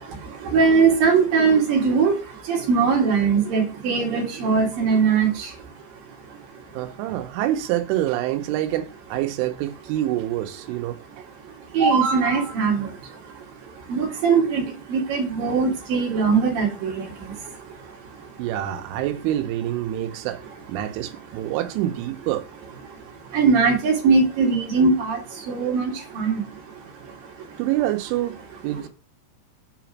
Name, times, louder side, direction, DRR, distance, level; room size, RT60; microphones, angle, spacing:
voice 1, 0.5-2.1 2.5-5.5 11.7-12.9 13.9-17.1 23.3-25.2 25.5-26.3, right 5 dB, 60° right, 2.8 m, -20 dB
voice 2, 6.8-11.0 18.4-20.4 20.7-22.4 27.6-28.4 28.6-28.9, right 13 dB, 85° right, 3.3 m, -26 dB
6.7 x 5.1 x 5.9 m
omnidirectional pair, 5.5 m